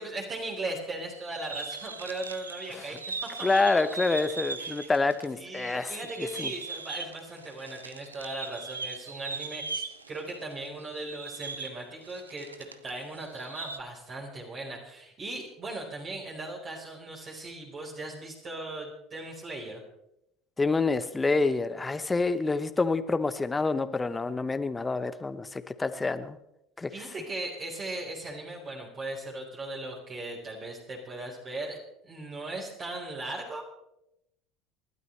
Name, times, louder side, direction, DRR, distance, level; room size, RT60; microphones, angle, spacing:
voice 1, 0.0-3.3 4.6-4.9 5.4-19.8 26.9-33.6, right 2 dB, 35° right, -2 dB, 4.4 m, -38 dB
sound 1, 1.1-5.3 5.5-12.9 13.2-13.8, right 4 dB, 90° right, 0.8 m, -39 dB
voice 2, 3.4-6.5 20.6-26.4 26.8-26.9, left 3 dB, 15° left, 12 dB, 1.0 m, -27 dB
29.0 x 12.5 x 3.3 m, 0.81 s
figure-of-eight pair, 70°, 0 cm